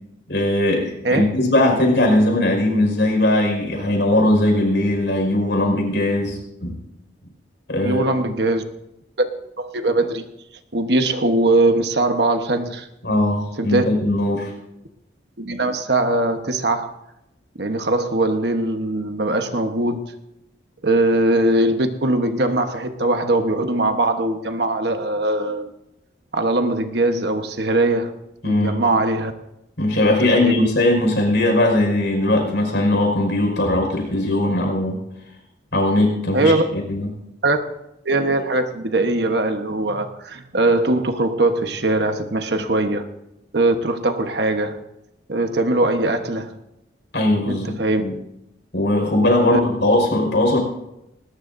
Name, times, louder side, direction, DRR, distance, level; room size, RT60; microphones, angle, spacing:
voice 1, 0.3-6.8 7.7-8.3 13.0-14.5 28.4-28.8 29.8-35.0 35.7-37.1 47.1-48.1 48.7-50.6, left 1 dB, 70° left, 2 dB, 5.3 m, -19 dB
voice 2, 7.8-8.6 9.2-9.3 9.6-10.2 10.7-12.9 13.6-13.9 15.4-16.9 17.6-20.1 20.8-25.7 26.3-29.3 30.1-30.7 36.3-36.6 37.4-37.6 38.0-43.1 43.5-44.8 45.3-46.5 47.5-48.0 49.5-49.6, right 2 dB, 65° right, 6 dB, 1.2 m, -21 dB
20.5 x 19.0 x 2.7 m, 0.87 s
head